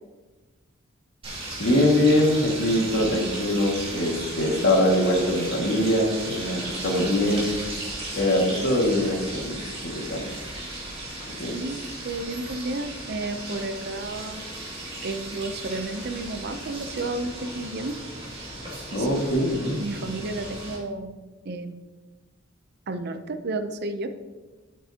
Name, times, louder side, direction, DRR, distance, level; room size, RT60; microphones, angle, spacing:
sound 1, 1.2-20.8, right 1 dB, 25° right, 2.5 m, -36 dB
voice 1, 1.6-7.5 8.2-9.7 10.1-10.2 11.4-11.6 18.9-19.8, left 1 dB, 60° left, -1 dB, 2.1 m, -23 dB
voice 2, 11.5-14.4 15.0-18.0 18.9-19.1 19.5-21.1 21.4-21.9 22.9-24.1, right 2 dB, 50° right, 9 dB, 0.6 m, -32 dB
9.8 x 8.4 x 2.9 m, 1.3 s
head